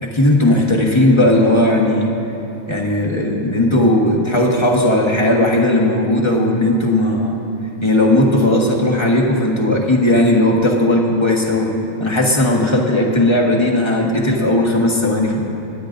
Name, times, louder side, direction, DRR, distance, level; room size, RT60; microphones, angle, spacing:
voice 1, 0.0-2.1 2.7-7.4 7.8-11.7 12.0-15.5, left 1 dB, 20° left, -2 dB, 1.4 m, -16 dB
25.0 x 10.0 x 2.6 m, 2.9 s
omnidirectional pair, 1.4 m